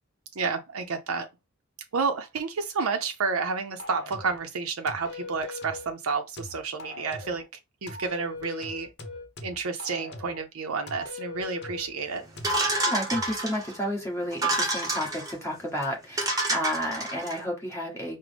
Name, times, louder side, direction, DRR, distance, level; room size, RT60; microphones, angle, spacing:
voice 1, 0.4-1.3 1.9-7.4 7.8-8.9 9.4-12.2, right 4 dB, 90° right, 0.6 m, -30 dB
sound 1, 3.8-4.5 4.9-5.9 6.4-7.5 7.9-10.5 10.9-11.9 12.4-13.4, left 2 dB, 50° left, 0.9 m, -40 dB
sound 2, 12.4-13.7 14.3-15.3 15.8-15.9 16.2-17.4, right 2 dB, 15° right, 0.9 m, -28 dB
voice 2, 12.9-18.2, equal, 10° left, 1.4 m, -31 dB
5.0 x 2.1 x 3.3 m
head